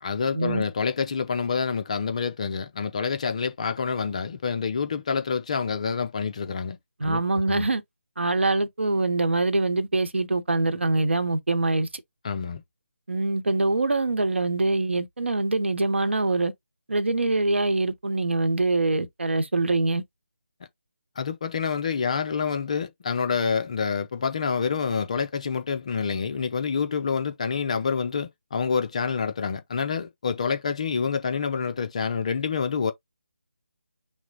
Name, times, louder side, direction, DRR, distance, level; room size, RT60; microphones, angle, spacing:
voice 1, 0.0-6.8 7.0-7.2 7.5-7.6 12.2-12.6 21.2-32.9, left 5 dB, 30° left, 0.5 m, -27 dB
voice 2, 7.0-7.8 8.2-12.0 13.1-16.5 16.9-20.0, right 2 dB, 60° right, 0.9 m, -24 dB
5.9 x 2.1 x 3.9 m
figure-of-eight pair, 155°, 7 cm